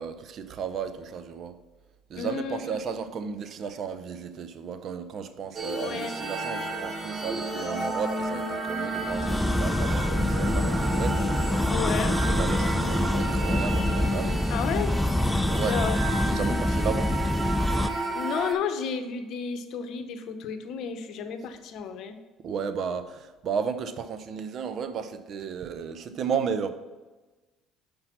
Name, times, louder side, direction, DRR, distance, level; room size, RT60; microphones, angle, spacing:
voice 1, 0.0-1.6 2.1-11.6 11.9-14.4 15.5-15.9 16.3-17.1 22.4-26.7, right 6 dB, 55° right, 10 dB, 0.6 m, -34 dB
voice 2, 2.2-3.0 5.8-6.2 11.7-12.2 14.5-14.9 15.7-16.0 16.4-16.6 18.2-22.2, left 6 dB, 65° left, 8 dB, 0.7 m, -32 dB
sound 1, 5.6-18.5, right 2 dB, 35° right, 1.3 m, -32 dB
sound 2, 9.0-17.9, left 1 dB, 10° left, 0.4 m, -26 dB
5.8 x 5.2 x 5.7 m, 1.2 s
hypercardioid pair, 60°, 0 cm